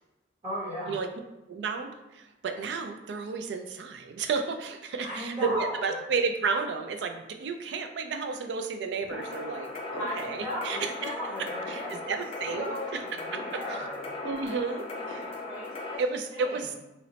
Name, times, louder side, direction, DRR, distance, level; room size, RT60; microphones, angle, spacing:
voice 1, 0.4-1.0 5.0-6.0 9.7-12.1 12.6-14.0 14.5-14.6 14.9-15.0 15.5-16.0 16.3-16.6, equal, 30° right, -8 dB, 0.8 m, -36 dB
voice 2, 1.5-11.1 11.7-13.0 13.3-13.8 14.2-15.2 16.0-16.8, right 4 dB, 70° right, 6 dB, 0.3 m, -32 dB
sound 1, 9.1-16.0, left 2 dB, 35° left, 0.4 m, -38 dB
2.9 x 2.0 x 2.8 m, 1.0 s
head